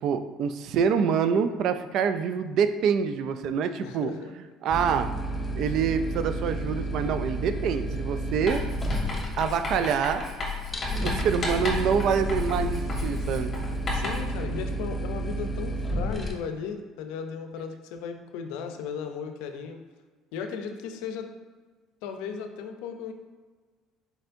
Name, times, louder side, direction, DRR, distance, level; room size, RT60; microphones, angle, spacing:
voice 1, 0.0-4.1 4.6-5.1 5.6-8.6 9.4-10.2 11.0-13.5, right 7 dB, 65° right, 10 dB, 0.3 m, -26 dB
voice 2, 3.8-4.3 12.2-12.4 13.9-19.8 20.3-21.3 22.0-23.1, left 6 dB, 85° left, 6 dB, 0.5 m, -36 dB
sound 1, 4.7-16.3, right 1 dB, 10° left, 0.6 m, -31 dB
Writing, 8.5-14.4, left 4 dB, 35° left, 1.5 m, -33 dB
4.5 x 4.3 x 2.6 m, 1.4 s
cardioid pair, 110°, 0 cm